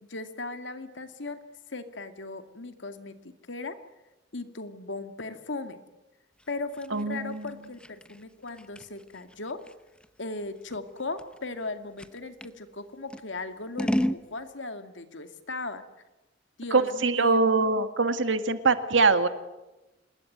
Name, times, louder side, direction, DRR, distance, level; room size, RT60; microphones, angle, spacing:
voice 1, 0.0-1.4 1.7-3.8 4.3-5.8 6.5-9.6 10.2-15.8 16.6-17.5, left 3 dB, 70° left, 8 dB, 2.3 m, -37 dB
Scissors, 6.4-12.6 13.1-14.3, equal, 5° left, 0.9 m, -34 dB
voice 2, 6.9-7.5 16.7-19.3, right 3 dB, 80° right, 10 dB, 2.0 m, -23 dB
27.0 x 21.0 x 9.3 m, 1.0 s
head